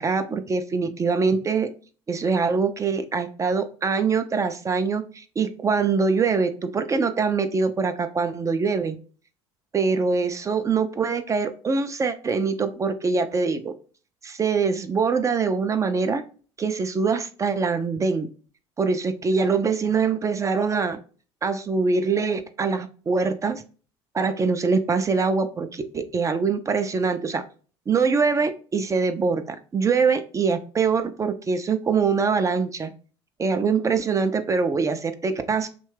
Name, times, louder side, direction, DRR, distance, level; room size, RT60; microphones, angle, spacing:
voice 1, 0.0-1.7 2.1-9.0 9.7-13.7 14.2-16.2 16.6-18.3 18.8-21.0 21.4-23.6 24.1-27.4 27.9-32.9 33.4-35.7, right 5 dB, 20° right, 9 dB, 0.3 m, -23 dB
2.7 x 2.2 x 3.1 m, 0.39 s
hypercardioid pair, 65°, 14 cm